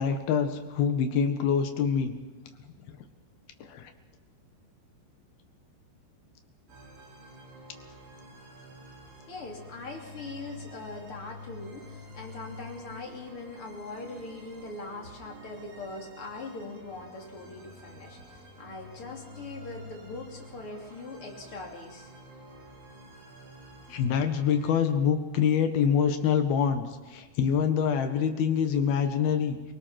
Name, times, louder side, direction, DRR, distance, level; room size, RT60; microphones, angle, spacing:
voice 1, 0.0-2.1 3.6-3.9 23.9-29.7, left 7 dB, 65° left, 7 dB, 3.3 m, -25 dB
sound 1, 6.7-24.7, left 1 dB, 65° right, 5.6 m, -49 dB
voice 2, 9.3-22.1, left 3 dB, 35° left, 1 dB, 3.5 m, -41 dB
27.0 x 18.5 x 6.0 m, 1.3 s
omnidirectional pair, 5.1 m